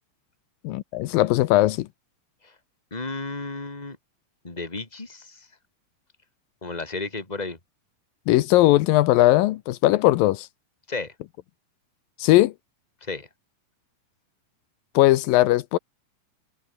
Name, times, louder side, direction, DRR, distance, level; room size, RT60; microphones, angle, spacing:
voice 1, 0.6-1.9 8.3-10.5 12.2-12.5 14.9-15.8, left 16 dB, 80° left, 2.5 m, -19 dB
voice 2, 2.9-4.0 4.4-5.5 6.6-7.6 10.9-11.1 13.0-13.3, left 3 dB, 10° left, 3.3 m, -33 dB
omnidirectional pair, 4.0 m